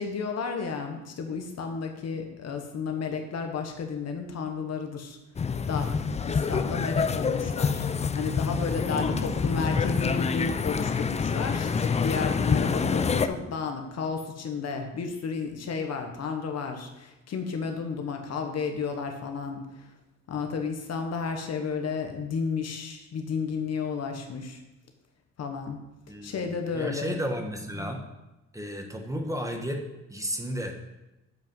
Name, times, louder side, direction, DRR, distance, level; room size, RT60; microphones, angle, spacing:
voice 1, 0.0-5.2 5.7-5.9 6.2-7.9 8.1-19.8 20.3-24.6 25.4-25.8 26.2-27.2 27.8-27.9, left 5 dB, 60° left, 4 dB, 1.3 m, -32 dB
sound 1, 5.4-13.3, left 5 dB, 20° left, 0.4 m, -27 dB
voice 2, 8.9-10.1 26.1-28.0 28.5-30.8, equal, 10° right, 3 dB, 1.2 m, -34 dB
7.7 x 5.2 x 5.5 m, 0.99 s
cardioid pair, 90°, 30 cm